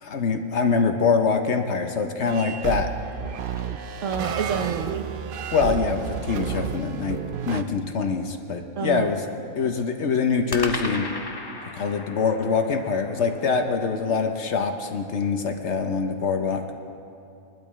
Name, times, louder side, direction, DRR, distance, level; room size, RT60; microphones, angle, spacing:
voice 1, 0.0-2.9 5.5-7.2 7.5-9.2 9.6-11.1 11.7-16.6, left 5 dB, 55° left, 5 dB, 0.9 m, -24 dB
sound 1, 2.2-7.6, right 7 dB, 80° right, 0.4 m, -31 dB
sound 2, 3.0-4.7 10.5-14.8, left 2 dB, 30° left, 0.4 m, -38 dB
voice 2, 4.0-5.1 8.8-9.1, right 6 dB, 60° right, 6 dB, 1.0 m, -29 dB
22.5 x 12.0 x 3.1 m, 2.6 s
omnidirectional pair, 1.6 m